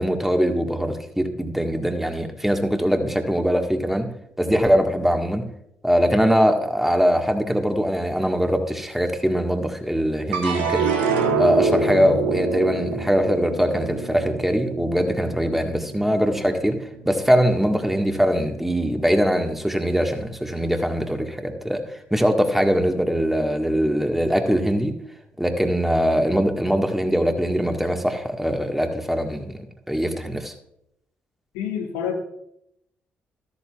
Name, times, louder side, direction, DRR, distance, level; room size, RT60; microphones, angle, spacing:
voice 1, 0.0-4.1 4.4-5.5 5.8-10.9 11.4-16.8 17.1-21.8 22.1-24.9 25.4-30.5, equal, 5° right, 5 dB, 1.7 m, -22 dB
sound 1, 10.3-16.8 17.2-17.9, right 4 dB, 80° right, 1.3 m, -26 dB
voice 2, 31.5-32.2, left 7 dB, 75° left, 3 dB, 1.5 m, -27 dB
13.5 x 12.5 x 2.5 m, 0.78 s
figure-of-eight pair, 40°, 5 cm